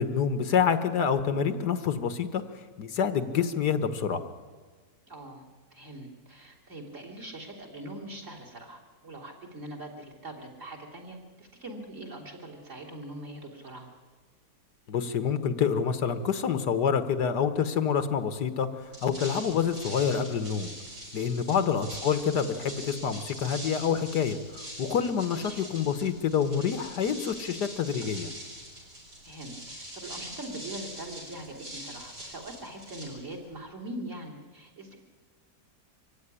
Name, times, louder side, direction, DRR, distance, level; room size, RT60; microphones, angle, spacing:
voice 1, 0.0-2.4 2.8-4.2 14.9-18.7 19.0-20.7 21.1-28.3, left 7 dB, 80° left, 10 dB, 1.8 m, -27 dB
voice 2, 5.1-5.4 5.7-13.9 21.5-21.7 25.3-25.6 29.2-35.0, right 1 dB, 45° right, -2 dB, 3.7 m, -42 dB
sound 1, 18.8-33.6, right 1 dB, 90° right, 7.7 m, -43 dB
24.0 x 16.0 x 9.9 m, 1.5 s
omnidirectional pair, 1.8 m